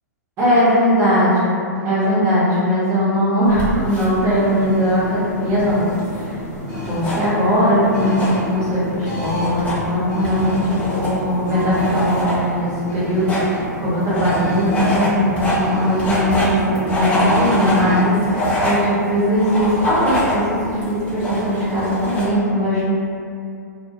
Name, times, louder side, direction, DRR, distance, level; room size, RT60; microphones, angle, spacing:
voice 1, 0.4-5.9 6.1-6.4 6.8-22.9, equal, 30° right, -11 dB, 0.8 m, -19 dB
sound 1, 3.4-22.3, equal, 15° left, 0.6 m, -26 dB
sound 2, 4.3-18.4, left 1 dB, 65° left, 0.9 m, -30 dB
2.1 x 2.1 x 2.8 m, 2.4 s
figure-of-eight pair, 110°, 10 cm